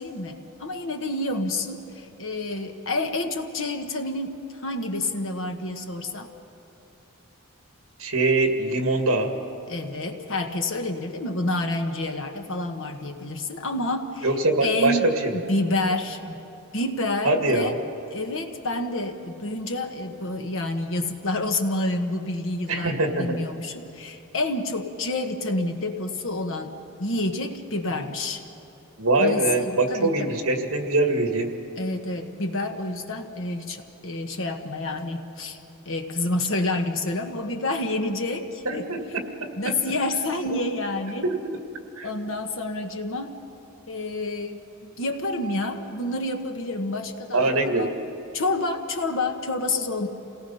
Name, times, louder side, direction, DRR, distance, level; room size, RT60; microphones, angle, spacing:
voice 1, 0.0-6.3 9.7-16.4 16.7-17.8 18.1-26.7 27.0-28.4 29.2-30.4 31.8-35.6 35.8-38.9 39.6-41.3 42.0-43.3 43.9-47.9 48.3-50.1, left 2 dB, 60° left, 5 dB, 1.4 m, -28 dB
voice 2, 8.0-9.3 14.2-15.3 17.2-17.7 22.7-23.4 29.0-31.5 38.7-39.0 41.2-41.6 42.0-42.1 47.3-47.9, right 2 dB, 65° right, 4 dB, 2.1 m, -23 dB
28.0 x 18.5 x 5.7 m, 3.0 s
head